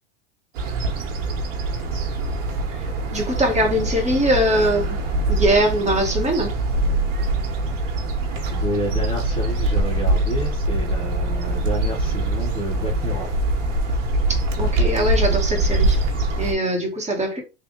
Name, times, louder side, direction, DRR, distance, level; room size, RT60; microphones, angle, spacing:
sound 1, 0.5-16.5, right 2 dB, 75° right, 1.3 m, -23 dB
voice 1, 3.1-5.0 5.3-6.5 14.3-16.0 16.4-17.4, right 1 dB, 20° right, 1.3 m, -21 dB
voice 2, 8.5-13.3, left 1 dB, 15° left, 0.9 m, -29 dB
3.4 x 2.4 x 3.8 m
supercardioid pair, 115°, 37 cm